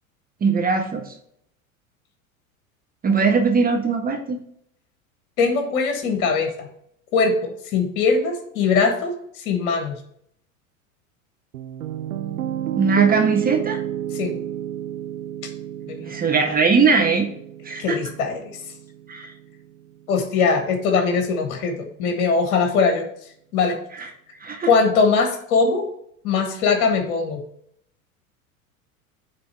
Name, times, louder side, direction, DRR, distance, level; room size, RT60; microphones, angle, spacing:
voice 1, 0.4-1.1 3.0-4.4 12.8-13.8 16.1-17.3 17.6-18.0 19.1-19.3 23.9-24.1 24.4-24.7, right 5 dB, 20° right, 4 dB, 0.9 m, -20 dB
voice 2, 5.4-6.7 7.1-9.9 14.1-14.4 15.9-16.1 17.8-18.4 20.1-23.1 23.5-23.8 24.7-25.9 26.2-27.4, left 4 dB, 60° left, 4 dB, 1.4 m, -21 dB
Piano, 11.5-19.6, right 11 dB, 85° right, 0.7 m, -31 dB
9.2 x 3.4 x 4.5 m, 0.70 s
hypercardioid pair, 90°, 42 cm